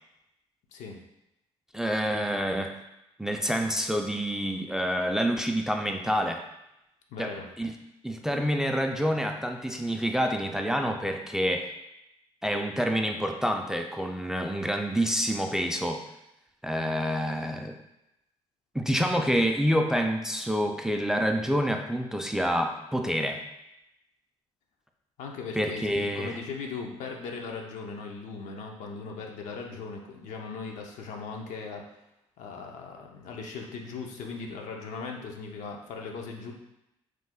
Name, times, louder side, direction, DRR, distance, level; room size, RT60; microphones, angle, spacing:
voice 1, 0.7-1.0 7.1-7.5 25.2-31.8 32.4-36.5, left 4 dB, 75° left, 1 dB, 0.5 m, -38 dB
voice 2, 1.7-2.7 3.2-6.4 7.2-7.3 7.6-7.7 8.0-11.7 12.4-16.0 16.6-17.7 18.7-23.4 25.6-26.4, equal, 5° right, 3 dB, 0.3 m, -27 dB
3.1 x 2.1 x 3.6 m, 0.87 s
supercardioid pair, 65°, 13 cm